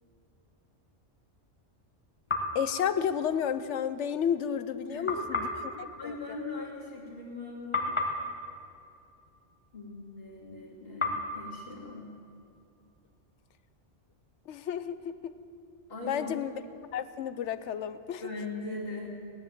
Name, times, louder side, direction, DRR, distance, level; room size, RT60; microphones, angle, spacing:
sound 1, 2.3-3.7 5.1-7.4 7.7-10.0 11.0-12.9, left 2 dB, 25° left, 1.4 m, -36 dB
voice 1, 2.5-5.5 6.0-6.1 14.5-15.3 16.1-16.5 16.9-18.2, left 8 dB, 80° left, 13 dB, 1.0 m, -31 dB
voice 2, 4.9-7.9 9.7-12.1 15.9-16.4 18.2-19.1, left 2 dB, 55° left, -4 dB, 3.0 m, -40 dB
17.0 x 11.0 x 7.3 m, 2.5 s
omnidirectional pair, 1.2 m